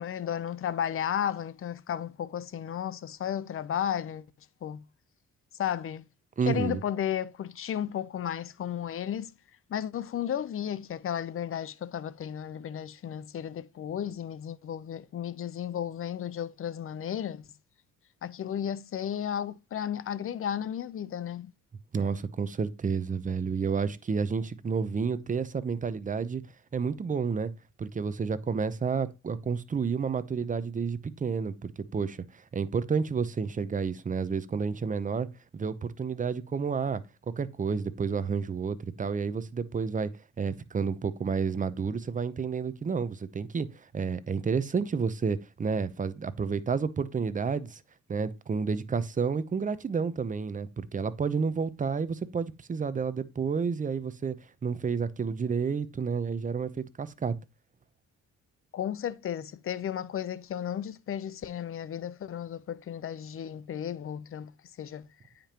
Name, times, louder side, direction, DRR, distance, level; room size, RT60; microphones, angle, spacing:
voice 1, 0.0-4.2 4.6-4.8 5.6-6.0 6.5-9.3 9.7-17.4 18.2-21.5 58.7-64.5 64.8-65.1, left 9 dB, 45° left, 0.6 m, -33 dB
voice 2, 6.4-6.8 21.9-26.4 26.7-27.5 27.8-32.2 32.5-35.3 35.5-37.0 37.4-40.1 40.4-47.8 48.1-54.3 54.6-57.3, right 5 dB, 25° right, 0.7 m, -30 dB
8.9 x 5.2 x 2.9 m
cardioid pair, 90°, 30 cm